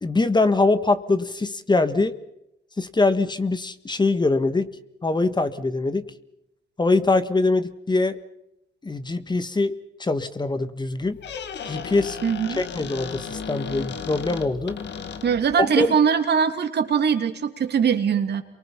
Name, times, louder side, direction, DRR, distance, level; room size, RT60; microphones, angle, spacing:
voice 1, 0.0-2.1 2.8-4.7 5.0-6.0 6.8-8.2 8.8-9.7 10.0-11.2 11.7-12.2 12.5-14.8 15.6-15.9, left 3 dB, 20° left, 11 dB, 1.5 m, -23 dB
Squeak, 11.0-15.6, left 6 dB, 65° left, 2.1 m, -35 dB
voice 2, 12.2-12.6 15.2-18.4, right 7 dB, 55° right, 7 dB, 2.8 m, -21 dB
28.0 x 23.5 x 5.7 m, 0.84 s
cardioid pair, 90°, 20 cm